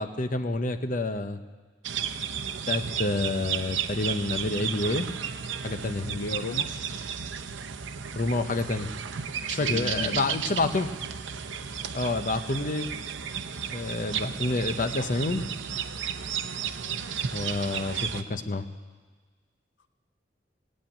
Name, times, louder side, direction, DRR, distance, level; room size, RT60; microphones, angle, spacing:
voice 1, 0.0-1.4 2.7-5.1 5.6-6.2 8.2-8.9 9.5-10.9 11.9-12.9 13.7-15.5 17.3-18.7, left 2 dB, 45° left, 8 dB, 0.9 m, -28 dB
sound 1, 1.8-18.2, right 7 dB, 90° right, 0.7 m, -33 dB
voice 2, 6.1-6.8 9.6-10.3, left 3 dB, 75° left, 10 dB, 0.5 m, -35 dB
17.0 x 8.7 x 9.1 m, 1.4 s
head